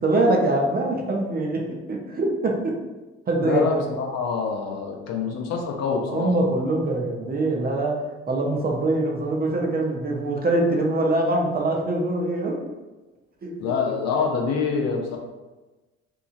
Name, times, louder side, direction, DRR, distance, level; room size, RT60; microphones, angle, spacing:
voice 1, 0.0-1.6 1.9-2.7 3.3-3.8 6.1-8.0 8.3-12.5 13.4-13.5, right 2 dB, 30° right, 0 dB, 0.6 m, -23 dB
voice 2, 3.4-6.3 13.6-15.2, left 5 dB, 55° left, 1 dB, 0.6 m, -26 dB
2.8 x 2.6 x 2.4 m, 1.2 s
hypercardioid pair, 60°, 32 cm